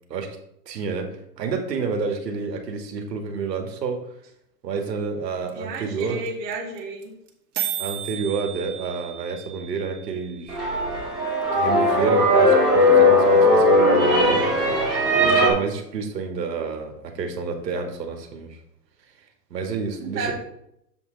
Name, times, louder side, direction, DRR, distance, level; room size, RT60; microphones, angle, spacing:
voice 1, 0.7-1.1 1.4-4.1 4.6-6.2 7.8-10.6 11.5-14.5 15.2-18.6 19.5-20.3, right 5 dB, 75° right, 3 dB, 1.9 m, -29 dB
voice 2, 5.4-7.1 20.0-20.3, right 3 dB, 20° right, -3 dB, 1.3 m, -32 dB
sound 1, 5.5-5.6 5.7-5.8 6.0-6.3 6.5-6.6 6.8-7.0 7.3-7.4 7.5-11.5, right 10 dB, 60° right, 2.0 m, -35 dB
sound 2, 10.5-15.5, left 1 dB, ahead, 2.5 m, -18 dB
7.2 x 6.2 x 3.9 m, 0.77 s
hypercardioid pair, 160°, 50 cm